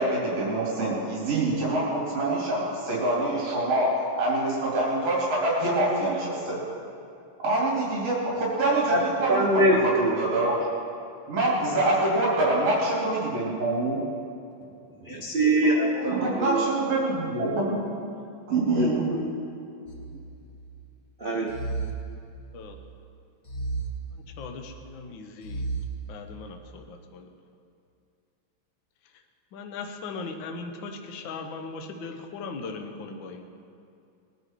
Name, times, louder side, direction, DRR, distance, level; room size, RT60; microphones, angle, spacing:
voice 1, 0.0-3.9 4.1-6.6 7.4-10.5 11.3-14.0 15.9-17.8 18.5-19.0, right 2 dB, 55° right, -6 dB, 4.0 m, -25 dB
voice 2, 9.3-10.1 15.1-16.6 18.8-19.2 21.2-21.5, right 1 dB, 90° right, -3 dB, 0.4 m, -23 dB
sound 1, 19.9-20.8 21.5-22.8 23.4-24.7 25.4-26.6, right 3 dB, 25° left, 1.0 m, -35 dB
voice 3, 24.4-25.7 26.1-27.3 29.5-33.5, left 4 dB, 60° left, 4 dB, 1.3 m, -38 dB
21.0 x 10.5 x 4.6 m, 2.5 s
omnidirectional pair, 3.3 m